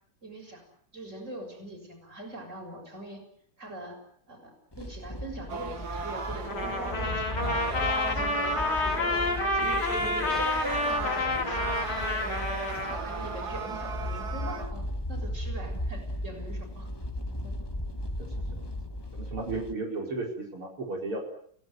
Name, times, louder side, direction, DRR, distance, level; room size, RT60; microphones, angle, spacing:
voice 1, 0.2-0.6 0.9-3.2 3.6-4.0 4.3-4.5 4.8-7.7 8.1-10.4 10.9-12.2 12.7-14.8 15.1-16.9 17.4-17.6, right 1 dB, 35° right, 3 dB, 7.2 m, -43 dB
sound 1, 4.7-19.7, left 1 dB, 10° left, 1.6 m, -37 dB
sound 2, 5.5-14.7, right 5 dB, 50° right, 2.2 m, -37 dB
Trumpet, 6.4-13.0, left 2 dB, 75° left, 3.9 m, -29 dB
voice 2, 19.1-21.2, right 3 dB, 80° right, 0 dB, 5.7 m, -34 dB
29.5 x 17.5 x 9.3 m, 0.64 s
omnidirectional pair, 2.3 m